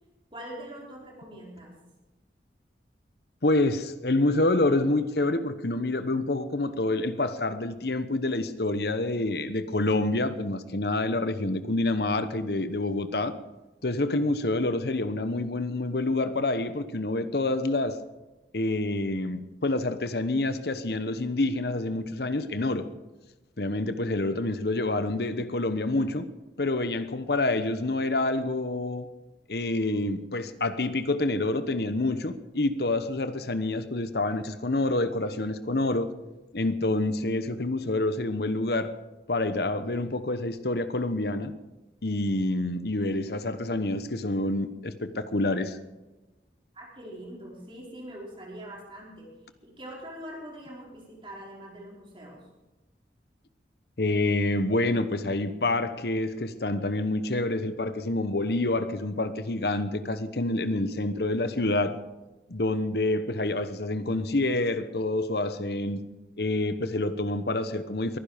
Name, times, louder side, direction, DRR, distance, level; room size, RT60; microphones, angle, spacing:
voice 1, 0.3-1.8 46.7-49.3 49.6-52.5, right 1 dB, 30° right, 4.9 m, -43 dB
voice 2, 3.4-13.4 13.8-18.0 18.5-22.9 23.6-26.2 26.6-29.1 29.5-36.1 36.5-38.9 39.3-41.5 42.0-45.8 54.0-62.0 62.5-66.0 66.4-68.2, left 2 dB, 60° left, 1.1 m, -27 dB
22.0 x 10.5 x 5.2 m
head